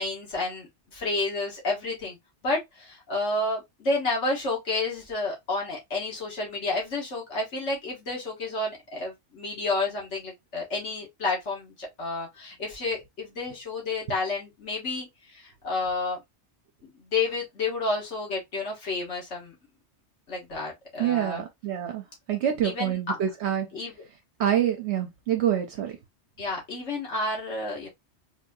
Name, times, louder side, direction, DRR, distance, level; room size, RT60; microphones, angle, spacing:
voice 1, 0.0-2.2 2.4-16.2 16.8-19.6 20.3-21.5 22.6-23.2 23.7-23.9 26.4-27.9, left 3 dB, 80° left, 1.7 m, -30 dB
voice 2, 21.0-22.0 22.3-23.7 24.4-25.9, right 10 dB, 70° right, 0.9 m, -26 dB
4.1 x 2.7 x 2.3 m
omnidirectional pair, 1.2 m